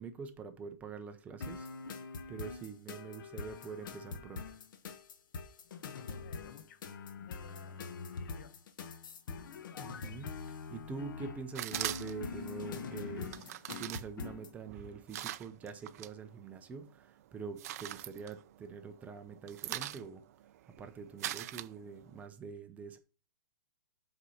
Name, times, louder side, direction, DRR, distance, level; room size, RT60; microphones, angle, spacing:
voice 1, 0.0-1.7 2.3-4.6 9.8-20.2 20.6-23.0, right 5 dB, 10° right, 0.7 m, -45 dB
sound 1, 1.4-14.5, left 5 dB, 65° left, 1.2 m, -44 dB
voice 2, 6.2-6.8 7.2-7.8 8.1-8.6, left 10 dB, 45° left, 1.0 m, -55 dB
sound 2, 11.5-12.4 13.2-16.1 16.5-17.0 17.4-18.9 19.2-22.2, right 13 dB, 45° right, 0.4 m, -42 dB
8.0 x 4.2 x 5.6 m
hypercardioid pair, 155°, 12 cm